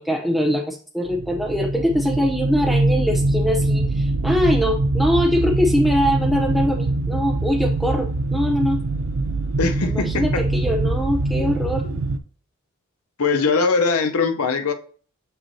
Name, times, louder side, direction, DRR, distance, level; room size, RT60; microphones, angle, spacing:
voice 1, 0.0-8.8 9.8-11.8, equal, ahead, 0.5 m, -22 dB
sound 1, 1.1-12.2, right 2 dB, 65° right, 0.5 m, -23 dB
voice 2, 9.6-10.4 11.9-12.0 13.2-14.7, left 4 dB, 90° left, 0.7 m, -21 dB
7.1 x 5.6 x 2.7 m
head